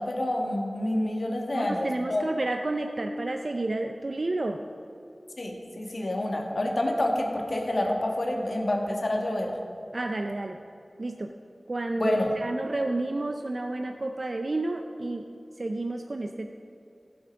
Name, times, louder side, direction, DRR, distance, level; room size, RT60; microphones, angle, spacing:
voice 1, 0.0-2.2 5.4-9.5 12.0-12.3, left 1 dB, 65° left, 1 dB, 1.7 m, -28 dB
voice 2, 1.5-4.6 9.9-10.6 11.0-11.3 11.7-15.3 15.6-16.5, right 2 dB, 60° right, 5 dB, 0.5 m, -30 dB
15.0 x 7.9 x 5.2 m, 2.7 s
wide cardioid pair, 60°, 0 cm